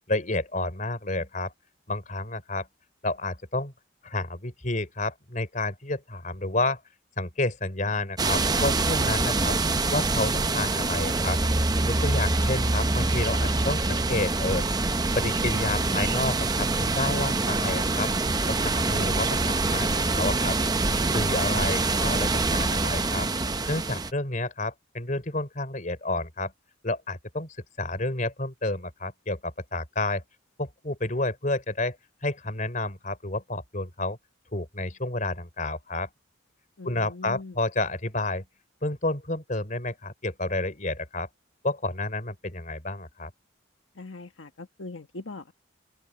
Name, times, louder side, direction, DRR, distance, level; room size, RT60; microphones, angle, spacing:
voice 1, 0.1-1.5 1.9-2.7 3.0-3.7 4.0-6.8 7.2-9.6 9.9-11.4 11.9-14.7 15.2-18.1 18.5-20.6 21.1-23.3 23.7-26.5 26.8-30.2 30.6-32.0 32.2-34.2 34.5-36.1 36.8-38.4 38.8-41.3 41.6-43.3, left 2 dB, 40° left, 3.8 m, -30 dB
sound 1, 8.2-24.1, right 3 dB, 20° right, 0.7 m, -25 dB
voice 2, 36.8-37.6 43.9-45.5, left 2 dB, 80° left, 1.4 m, -41 dB
open air
head